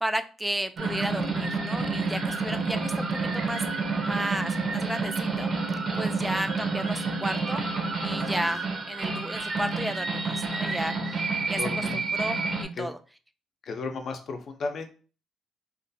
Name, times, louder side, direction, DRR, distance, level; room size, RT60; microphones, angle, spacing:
voice 1, 0.0-3.6 4.0-5.5 5.9-7.6 8.0-10.9 11.5-11.6 11.9-13.0, right 1 dB, 10° right, 9 dB, 0.3 m, -33 dB
sound 1, 0.8-12.6, right 3 dB, 55° right, 0.6 m, -29 dB
voice 2, 11.6-12.0 12.7-12.9 13.6-14.9, left 4 dB, 55° left, 5 dB, 0.5 m, -34 dB
2.5 x 2.3 x 2.6 m, 0.36 s
cardioid pair, 90°, 0 cm